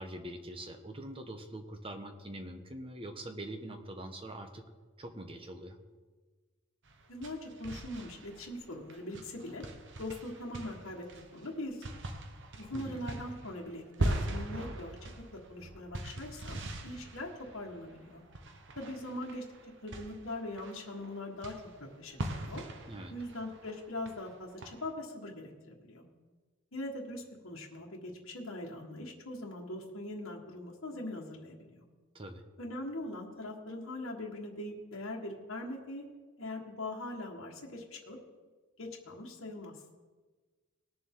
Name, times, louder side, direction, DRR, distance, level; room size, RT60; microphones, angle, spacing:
voice 1, 0.0-4.6 5.0-5.8 12.7-13.0 22.9-23.1 32.1-32.4, right 1 dB, 25° right, 6 dB, 1.0 m, -43 dB
sound 1, 6.8-24.9, right 1 dB, 55° right, 0.9 m, -41 dB
voice 2, 7.1-9.6 10.0-11.0 11.3-11.9 12.6-14.9 15.3-16.6 16.8-18.2 18.7-19.4 19.8-21.5 21.8-22.6 23.1-26.0 26.7-31.8 32.6-36.0 36.4-38.2 38.8-39.7, left 1 dB, 65° left, -2 dB, 1.6 m, -41 dB
19.5 x 6.9 x 3.8 m, 1.4 s
head